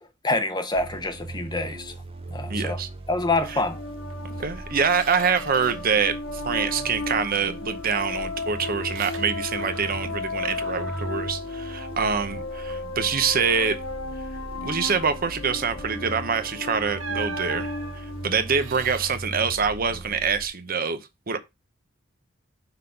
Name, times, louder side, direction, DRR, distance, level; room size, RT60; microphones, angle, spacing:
voice 1, 0.2-1.9 2.3-2.8 3.1-3.8, left 2 dB, 20° left, 0.9 m, -26 dB
sound 1, 0.7-20.5, right 2 dB, 30° right, 0.9 m, -39 dB
voice 2, 2.5-2.9 3.5-3.6 4.4-13.8 14.6-21.0 21.3-21.4, right 6 dB, 50° right, 0.8 m, -25 dB
sound 2, 3.4-18.8, left 3 dB, 75° left, 0.7 m, -35 dB
Squeak, 4.1-4.2 4.6-6.0 6.3-6.9 7.3-10.1 10.4-12.3 12.7-12.9 13.3-14.0 16.1-16.3 17.0-19.2, right 7 dB, 85° right, 1.0 m, -41 dB
5.8 x 3.8 x 5.6 m
head